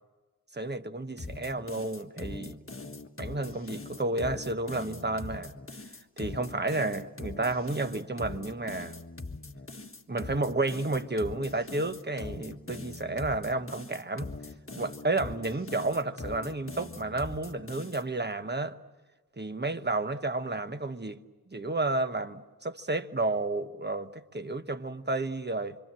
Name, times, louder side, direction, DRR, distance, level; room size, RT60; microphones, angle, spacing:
voice 1, 0.5-2.6 3.2-5.5 6.2-8.9 10.1-14.3 14.7-18.8 19.4-21.2 21.5-25.8, right 2 dB, 30° right, 1.2 m, -31 dB
sound 1, 1.2-18.0, left 3 dB, 35° left, 1.5 m, -42 dB
26.5 x 26.0 x 7.7 m
wide cardioid pair, 70°, 35 cm